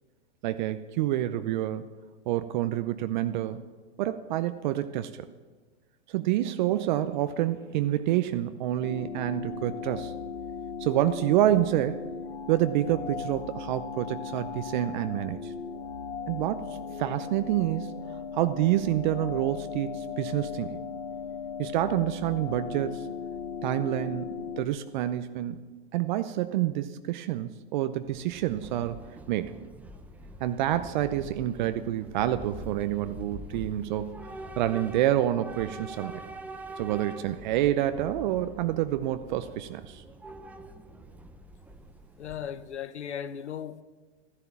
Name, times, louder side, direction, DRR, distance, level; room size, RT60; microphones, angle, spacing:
voice 1, 0.4-1.9 2.3-3.6 4.0-5.1 6.1-10.1 10.8-12.1 12.5-15.5 16.3-17.9 18.3-20.8 21.6-23.1 23.6-25.6 25.9-29.0 29.3-29.6 30.4-34.2 34.6-36.2 36.8-40.0, right 13 dB, 45° right, 0.7 m, -28 dB
sound 1, 8.8-24.7, left 6 dB, 70° left, 1.4 m, -37 dB
Train / Subway metro underground, 28.0-42.8, right 1 dB, 5° right, 0.6 m, -45 dB
voice 2, 42.2-43.8, left 9 dB, 90° left, 0.9 m, -37 dB
14.5 x 11.0 x 7.1 m
hypercardioid pair, 130°, 34 cm